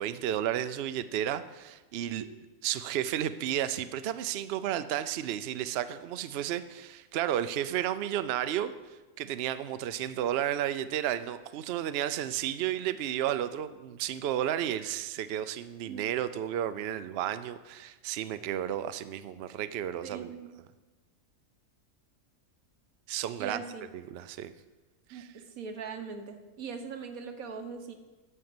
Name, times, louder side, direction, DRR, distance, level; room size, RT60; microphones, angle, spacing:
voice 1, 0.0-2.2 2.6-20.3 23.1-23.6 23.9-24.5 25.1-25.3, right 11 dB, 60° right, 13 dB, 0.7 m, -32 dB
voice 2, 20.0-20.5 23.4-23.9 25.1-27.9, right 5 dB, 80° right, 7 dB, 1.5 m, -41 dB
12.5 x 5.4 x 7.8 m, 1.2 s
omnidirectional pair, 1.4 m